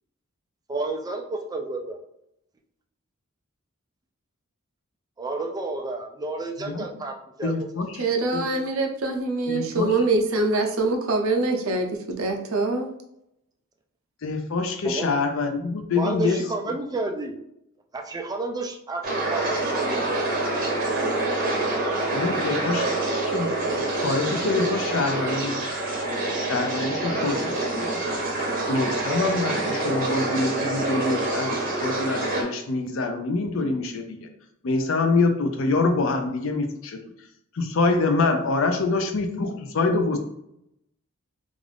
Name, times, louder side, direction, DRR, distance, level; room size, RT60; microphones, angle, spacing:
voice 1, 0.7-2.0 5.2-7.5 14.8-15.1 16.0-17.4 17.9-19.0 19.3-20.3, right 2 dB, 20° right, 0.3 m, -30 dB
voice 2, 7.4-8.1 8.3-8.4 9.5-10.0 14.2-16.4 22.1-22.9 23.3-23.5 24.0-25.6 26.5-27.9 28.2-28.3 28.7-31.5 31.8-34.3 34.6-37.0 37.5-40.2, left 3 dB, 65° left, 0.5 m, -25 dB
voice 3, 8.0-12.9, right 2 dB, 75° right, 0.5 m, -24 dB
sound 1, 19.0-32.4, right 2 dB, 45° right, 0.8 m, -26 dB
2.5 x 2.4 x 3.3 m
head